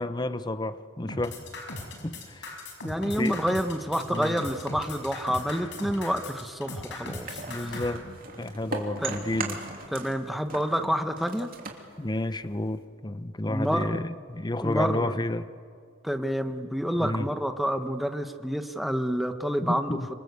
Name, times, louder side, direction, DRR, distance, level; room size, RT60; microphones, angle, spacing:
voice 1, 0.0-1.4 2.0-2.6 3.2-3.4 4.1-4.4 7.1-7.2 7.5-8.0 8.4-9.6 12.0-15.5 17.0-17.3 19.6-20.1, left 1 dB, 20° left, 13 dB, 0.8 m, -31 dB
sound 1, 1.1-7.9, left 2 dB, 65° left, 5.5 m, -38 dB
voice 2, 2.8-7.8 9.0-9.3 9.9-11.5 13.5-14.0 14.6-15.2 16.0-20.0, equal, ahead, 7 dB, 1.2 m, -28 dB
sound 2, 7.2-10.2 10.5-12.8, right 3 dB, 50° right, 3.1 m, -38 dB
26.5 x 25.5 x 8.2 m, 2.3 s
head